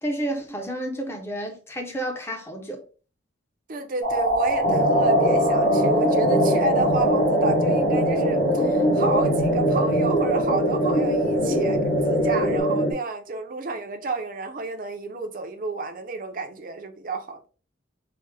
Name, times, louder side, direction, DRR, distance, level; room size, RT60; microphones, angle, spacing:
voice 1, 0.0-2.8, right 1 dB, 15° left, 0.5 m, -30 dB
voice 2, 3.7-17.4, right 3 dB, 45° right, 0.5 m, -30 dB
sound 1, 4.0-12.6, right 1 dB, 80° left, 1.5 m, -25 dB
sound 2, 4.6-12.9, equal, 60° left, 0.7 m, -23 dB
3.2 x 2.1 x 3.2 m
head